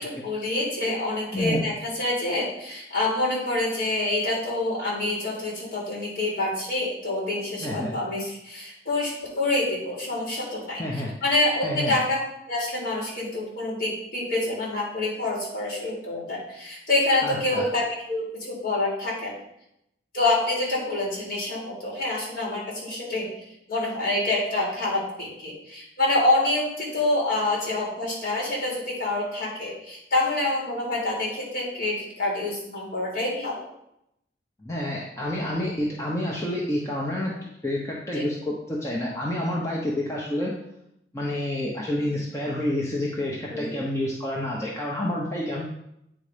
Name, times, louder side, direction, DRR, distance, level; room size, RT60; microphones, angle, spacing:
voice 1, 0.0-10.8 11.2-12.2 12.5-19.4 20.1-23.3 23.7-33.5 38.1-38.2 43.5-43.7, left 2 dB, 50° left, -4 dB, 3.3 m, -27 dB
voice 2, 7.6-7.9 10.8-11.1 11.6-12.0 17.2-17.6 34.6-37.3 37.6-40.5 41.1-45.6, left 1 dB, 15° left, -4 dB, 1.0 m, -28 dB
8.7 x 4.1 x 5.1 m, 0.79 s
head